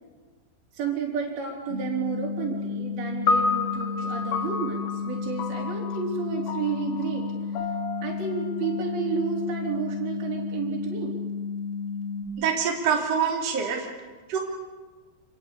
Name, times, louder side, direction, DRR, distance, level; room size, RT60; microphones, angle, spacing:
voice 1, 0.7-7.2 8.0-11.1 13.6-13.7, right 6 dB, 55° right, -3 dB, 6.0 m, -31 dB
sound 1, 1.7-12.2, left 5 dB, 15° left, 3.3 m, -32 dB
sound 2, 3.3-9.7, left 4 dB, 80° left, 1.6 m, -31 dB
voice 2, 12.4-13.9 14.3-14.4, right 7 dB, 40° right, 0 dB, 3.7 m, -25 dB
27.5 x 17.5 x 8.5 m, 1.4 s
omnidirectional pair, 5.2 m